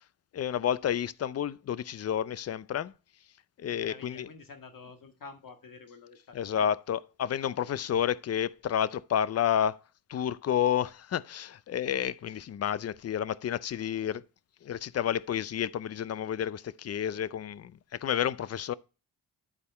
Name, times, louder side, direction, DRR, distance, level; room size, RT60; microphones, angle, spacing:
voice 1, 0.3-2.9 3.6-4.3 6.3-9.8 10.1-14.2 14.6-18.7, left 9 dB, 40° left, 0.5 m, -30 dB
voice 2, 3.7-6.7, left 4 dB, 55° left, 1.7 m, -49 dB
9.8 x 4.2 x 5.4 m
cardioid pair, 70°, 39 cm